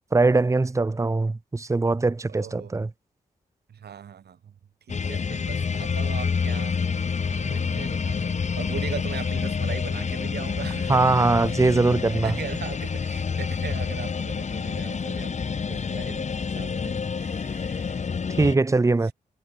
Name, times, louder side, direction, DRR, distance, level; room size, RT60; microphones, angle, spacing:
voice 1, 0.1-2.9 10.9-12.3 18.4-19.1, right 3 dB, 20° right, 0.6 m, -21 dB
voice 2, 2.3-2.7 3.7-4.5 4.9-11.6 12.0-18.3, right 8 dB, 80° right, 6.7 m, -40 dB
sound 1, 4.9-18.6, left 5 dB, 45° left, 0.8 m, -28 dB
supercardioid pair, 45°, 17 cm